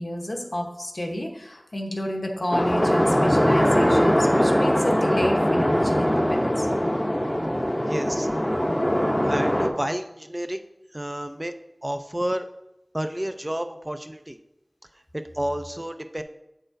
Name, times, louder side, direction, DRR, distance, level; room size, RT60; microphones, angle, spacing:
voice 1, 0.0-6.7, left 1 dB, 60° left, 3 dB, 0.9 m, -30 dB
sound 1, 2.5-9.7, equal, 15° left, 0.7 m, -21 dB
voice 2, 7.9-8.3 9.2-10.6 10.9-11.5 11.8-12.5 12.9-14.4 15.1-16.2, right 1 dB, 25° right, 8 dB, 0.4 m, -30 dB
7.5 x 6.6 x 2.6 m, 0.87 s
wide cardioid pair, 50°, 0 cm